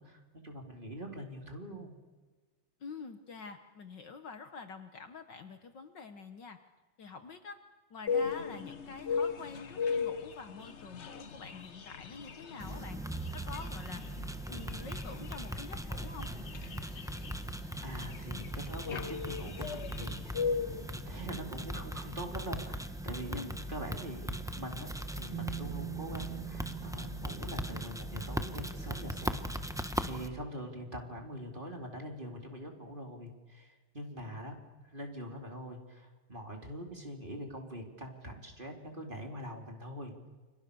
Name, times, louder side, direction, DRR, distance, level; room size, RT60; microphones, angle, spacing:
voice 1, 0.0-2.0 17.8-20.4 20.9-29.5 30.0-34.5 34.9-40.3, equal, 20° right, 2 dB, 4.2 m, -43 dB
voice 2, 2.8-6.6 7.0-7.6 7.9-13.0 13.3-14.0 14.5-16.3 23.3-23.6, left 4 dB, 60° left, 8 dB, 1.9 m, -46 dB
sound 1, 8.1-20.9, left 5 dB, 40° left, 1.0 m, -38 dB
sound 2, 12.6-30.3, right 1 dB, 5° right, 0.7 m, -39 dB
Bass guitar, 25.3-31.4, right 18 dB, 80° right, 2.9 m, -46 dB
29.5 x 27.5 x 7.1 m, 1.3 s
omnidirectional pair, 2.4 m